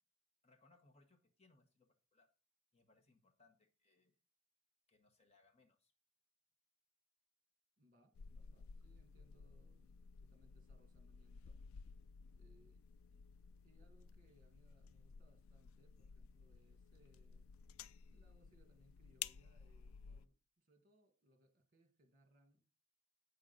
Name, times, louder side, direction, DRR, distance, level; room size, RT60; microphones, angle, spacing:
voice 1, 0.4-2.3 2.7-4.1 4.9-5.9, left 3 dB, 30° left, 1.1 m, -72 dB
voice 2, 7.8-11.6 12.4-12.8 13.1-13.3 13.6-17.5 18.1-22.6, right 1 dB, 40° right, 1.7 m, -72 dB
sound 1, 8.1-20.3, left 7 dB, 85° left, 0.4 m, -55 dB
8.3 x 6.2 x 4.0 m
head